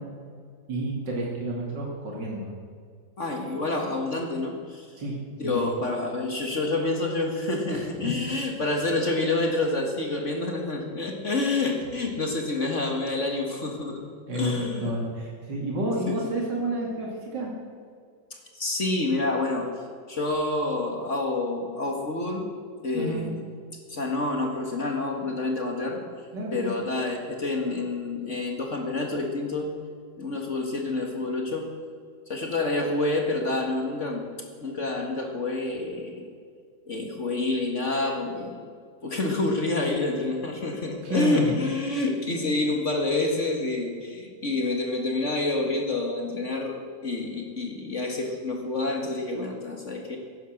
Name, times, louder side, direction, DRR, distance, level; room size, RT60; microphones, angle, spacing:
voice 1, 0.7-2.5 5.0-5.2 5.4-5.7 7.7-8.4 14.3-17.5 22.9-23.2 26.3-26.7 41.0-41.5, right 1 dB, 90° right, -2 dB, 3.1 m, -30 dB
voice 2, 3.2-4.9 5.4-14.9 16.1-16.2 18.5-19.7 20.1-22.5 22.8-23.4 23.9-26.0 26.5-29.7 30.2-31.7 32.3-34.3 34.6-36.3 36.9-38.6 39.0-50.2, left 2 dB, 45° left, 2 dB, 2.2 m, -28 dB
16.0 x 11.0 x 6.6 m, 2.2 s
omnidirectional pair, 1.9 m